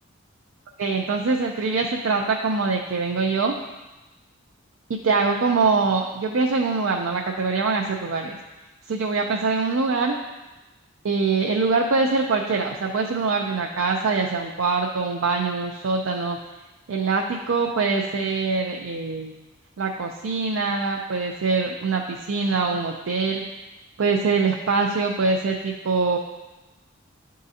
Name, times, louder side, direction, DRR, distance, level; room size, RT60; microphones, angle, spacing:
voice 1, 0.8-3.5 4.9-8.4 8.9-10.2 11.0-16.4 16.9-19.4 19.8-23.4 24.0-26.2, right 4 dB, 80° right, 1 dB, 0.5 m, -23 dB
10.5 x 3.7 x 2.7 m, 1.1 s
head